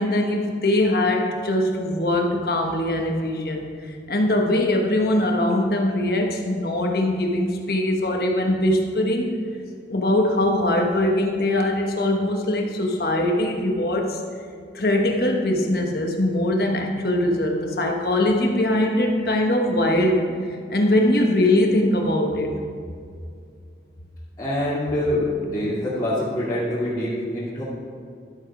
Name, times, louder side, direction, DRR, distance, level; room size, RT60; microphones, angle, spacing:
voice 1, 0.0-9.4 9.9-14.2 14.7-20.3 20.7-22.5, left 1 dB, 55° left, 2 dB, 1.3 m, -22 dB
voice 2, 24.4-27.6, left 1 dB, 25° left, -10 dB, 2.3 m, -25 dB
12.0 x 8.0 x 4.9 m, 2.3 s
head